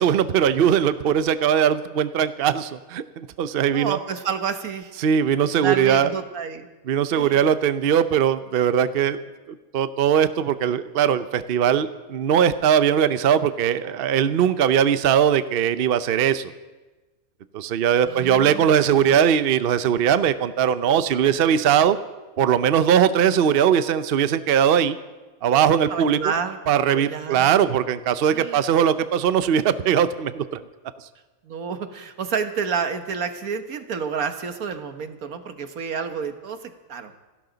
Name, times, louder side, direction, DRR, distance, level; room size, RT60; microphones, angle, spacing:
voice 1, 0.0-4.0 5.0-6.1 6.9-9.2 9.7-16.5 17.5-22.0 22.4-25.0 25.4-26.3 26.7-30.6, right 8 dB, 55° right, 12 dB, 0.7 m, -20 dB
voice 2, 3.7-4.9 5.4-6.7 7.1-7.5 18.0-18.7 25.9-27.5 28.3-28.8 31.4-37.1, right 6 dB, 80° right, 8 dB, 1.6 m, -30 dB
28.0 x 12.5 x 4.0 m, 1.2 s
omnidirectional pair, 1.5 m